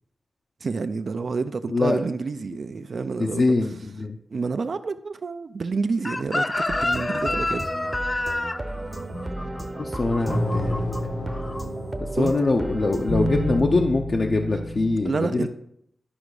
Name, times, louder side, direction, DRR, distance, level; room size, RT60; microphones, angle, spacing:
voice 1, 0.6-3.4 4.3-7.7 12.2-12.3 15.0-15.5, right 4 dB, 60° right, 10 dB, 0.4 m, -28 dB
voice 2, 1.7-2.0 3.2-4.2 9.8-10.9 12.0-15.5, left 3 dB, 45° left, 1 dB, 0.7 m, -23 dB
Chicken rooster, 6.0-11.0 11.3-11.6, left 2 dB, 25° left, 0.3 m, -28 dB
sound 1, 6.7-13.6, right 2 dB, 25° right, 0.8 m, -34 dB
sound 2, 9.1-15.0, left 1 dB, 85° left, 2.8 m, -30 dB
11.5 x 5.0 x 4.8 m, 0.73 s
wide cardioid pair, 120°, 0 cm